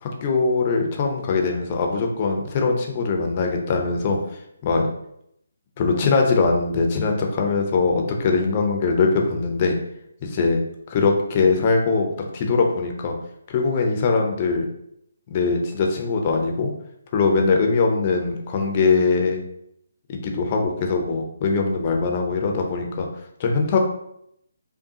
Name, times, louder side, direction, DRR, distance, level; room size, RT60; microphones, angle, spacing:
voice 1, 0.0-4.2 4.6-4.8 5.8-9.7 10.2-10.6 10.9-13.1 13.5-14.7 15.3-16.7 17.1-19.4 20.1-23.1 23.4-23.8, left 4 dB, 35° left, 2 dB, 0.6 m, -21 dB
5.4 x 2.3 x 2.7 m, 0.75 s
figure-of-eight pair, 145°, 0 cm